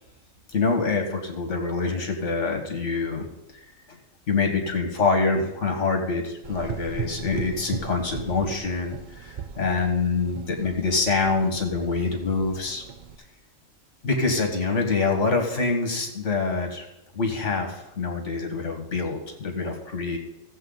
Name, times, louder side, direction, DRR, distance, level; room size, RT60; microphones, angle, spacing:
voice 1, 0.5-3.3 4.3-12.8 14.0-16.9 17.1-20.2, left 4 dB, 65° left, 3 dB, 2.0 m, -25 dB
Gurgling / Engine, 6.4-13.2, right 7 dB, 45° right, 0.7 m, -38 dB
16.5 x 7.6 x 4.0 m, 0.87 s
omnidirectional pair, 1.4 m